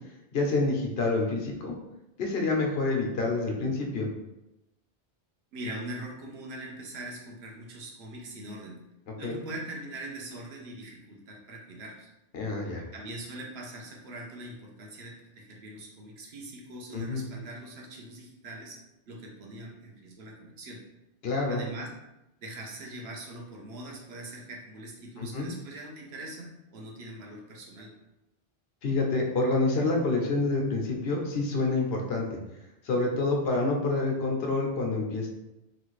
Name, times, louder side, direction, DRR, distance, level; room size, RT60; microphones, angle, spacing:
voice 1, 0.3-1.7 2.2-4.1 9.2-9.4 12.3-12.8 16.9-17.2 21.2-21.7 25.2-25.5 28.8-32.4 32.8-35.3, left 3 dB, 75° left, 0 dB, 0.9 m, -27 dB
voice 2, 5.5-8.8 9.2-12.1 12.9-18.8 19.1-20.8 21.5-21.9 22.4-27.9, right 1 dB, 85° right, -1 dB, 1.0 m, -42 dB
3.1 x 2.4 x 3.1 m, 0.94 s
omnidirectional pair, 1.0 m